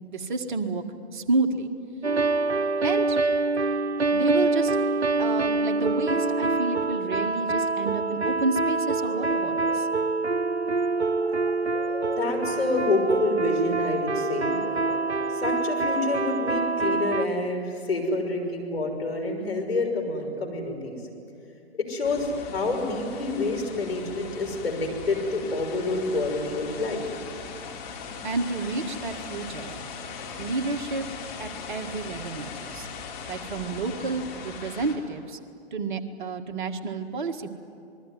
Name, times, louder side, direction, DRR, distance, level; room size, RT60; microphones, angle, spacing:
voice 1, 0.1-0.8 1.1-1.7 2.8-3.2 4.1-4.8 5.2-9.9 28.2-29.8 30.4-31.1 31.4-32.9 33.3-35.4 35.7-37.5, right 3 dB, 45° right, 6 dB, 1.9 m, -30 dB
sound 1, 2.0-17.3, right 3 dB, 80° right, 0.8 m, -25 dB
sound 2, 9.0-9.9 11.2-12.6 14.6-15.0, equal, 10° right, 3.4 m, -40 dB
voice 2, 12.2-14.6 15.3-21.0 21.8-27.0, left 2 dB, 65° left, 2 dB, 6.1 m, -28 dB
sound 3, 22.0-35.0, left 5 dB, 25° left, 3.6 m, -39 dB
27.0 x 21.0 x 9.5 m, 2.5 s
figure-of-eight pair, 125°, 33 cm